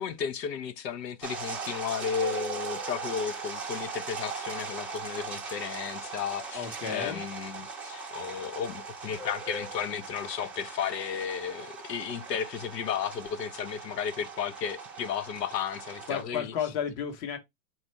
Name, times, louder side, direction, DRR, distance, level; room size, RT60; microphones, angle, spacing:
voice 1, 0.0-16.5, left 7 dB, 85° left, 0.8 m, -34 dB
sound 1, 1.2-16.2, right 4 dB, 5° right, 0.6 m, -39 dB
voice 2, 6.5-7.2 16.1-17.4, left 8 dB, 30° left, 1.0 m, -32 dB
4.2 x 2.4 x 4.4 m
hypercardioid pair, 145°, 48 cm